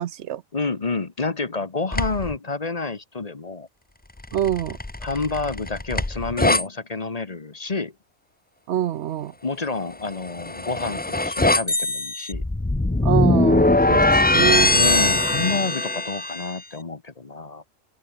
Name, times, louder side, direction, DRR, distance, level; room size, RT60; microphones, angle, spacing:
voice 1, 0.0-0.4 4.3-4.8 8.7-9.3 13.0-14.8, right 11 dB, 75° right, 0.9 m, -25 dB
voice 2, 0.5-3.7 5.0-7.9 9.4-12.4 14.7-17.6, left 3 dB, 35° left, 1.2 m, -29 dB
sound 1, 1.9-2.4 4.2-6.6 10.1-16.5, left 2 dB, 15° left, 0.4 m, -21 dB
open air
omnidirectional pair, 1.2 m